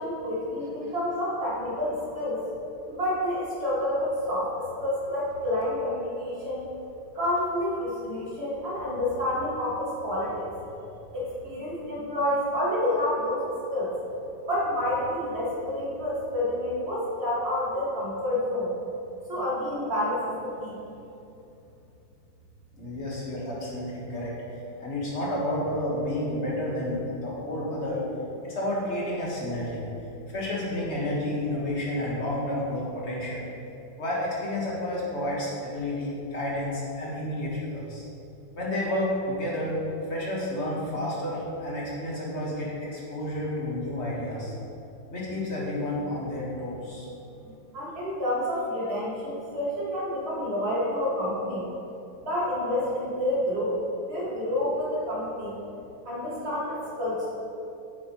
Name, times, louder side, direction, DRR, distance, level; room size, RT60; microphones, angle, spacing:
voice 1, 0.0-2.4 2.9-6.7 7.1-10.4 11.1-13.4 13.7-13.9 14.5-18.7 19.3-20.8 47.4-51.6 52.3-53.8 54.1-55.6 56.1-57.3, left 1 dB, 35° right, -7 dB, 2.1 m, -29 dB
voice 2, 22.7-24.3 24.8-28.0 28.4-29.8 30.3-33.5 34.0-38.0 38.6-39.8 40.1-44.5 45.1-47.1, left 1 dB, 35° left, -5 dB, 1.6 m, -30 dB
8.1 x 7.2 x 3.1 m, 2.8 s
omnidirectional pair, 2.1 m